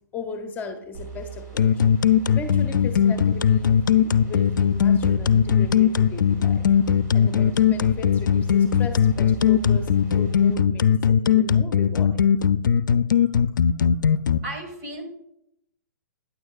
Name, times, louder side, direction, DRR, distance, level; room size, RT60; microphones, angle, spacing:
voice 1, 0.1-1.8 2.3-6.7 7.1-12.3, left 3 dB, 15° left, 6 dB, 0.6 m, -37 dB
sound 1, 0.9-10.5, right 6 dB, 75° right, 3.1 m, -41 dB
sound 2, 1.6-14.4, left 8 dB, 80° left, 0.4 m, -18 dB
voice 2, 14.4-15.0, right 2 dB, 50° right, 4 dB, 2.0 m, -36 dB
9.2 x 7.9 x 2.4 m, 0.80 s
hypercardioid pair, 130°, 10 cm